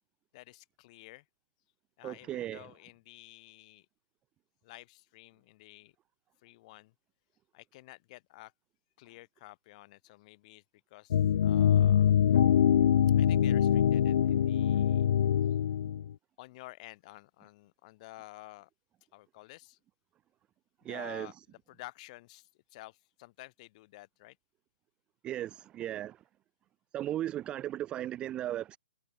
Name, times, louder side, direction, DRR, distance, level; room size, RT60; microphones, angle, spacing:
voice 1, 0.3-1.2 2.0-3.9 4.6-5.9 6.4-6.9 7.5-8.5 9.0-10.6 10.9-12.1 13.2-15.0 16.4-18.7 19.1-19.8 20.8-24.4, left 20 dB, 30° left, 3.9 m, -51 dB
voice 2, 2.0-2.7 20.8-21.3 25.2-26.2 26.9-28.8, right 12 dB, 15° right, 0.6 m, -36 dB
sound 1, 11.1-16.1, left 9 dB, 55° left, 0.5 m, -24 dB
hypercardioid pair, 165°, 7 cm